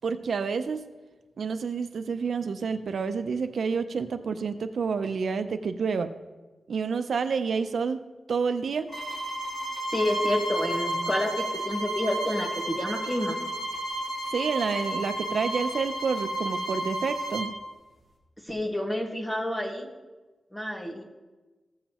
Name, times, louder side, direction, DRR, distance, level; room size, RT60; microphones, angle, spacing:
voice 1, 0.0-0.8 1.4-6.1 6.7-8.0 8.3-8.9 14.3-17.5, right 5 dB, 70° right, 9 dB, 0.5 m, -29 dB
sound 1, 8.9-17.5, right 1 dB, 70° left, 2.6 m, -32 dB
voice 2, 9.9-13.4 18.4-19.9 20.5-21.0, left 1 dB, 15° left, 1 dB, 1.4 m, -29 dB
15.5 x 7.3 x 2.9 m, 1.2 s
wide cardioid pair, 130°, 0 cm